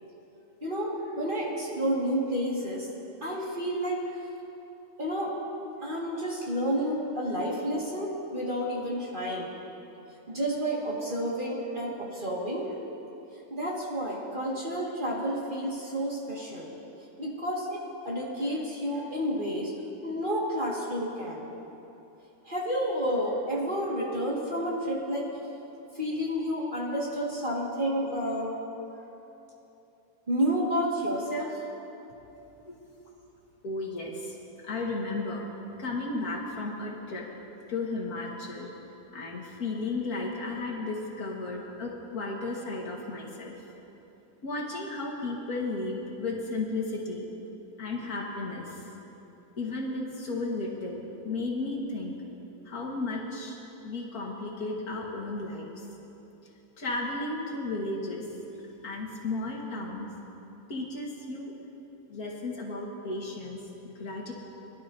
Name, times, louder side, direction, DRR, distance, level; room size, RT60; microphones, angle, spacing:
voice 1, 0.6-2.9 3.2-4.2 5.0-5.4 5.8-9.5 10.3-12.7 13.5-16.7 17.2-19.7 20.0-21.5 22.4-25.3 25.9-28.5 30.3-31.6 33.0-33.1, equal, 30° right, -5 dB, 2.0 m, -30 dB
voice 2, 33.6-34.4 34.6-35.4 35.8-37.3 37.7-38.7 39.1-43.5 44.4-47.3 47.8-48.8 49.6-52.2 52.7-53.6 53.8-55.7 56.8-58.3 58.8-60.1 60.7-61.5 62.1-64.3, left 2 dB, 70° left, -2 dB, 2.1 m, -34 dB
22.0 x 12.0 x 2.7 m, 3.0 s
omnidirectional pair, 1.7 m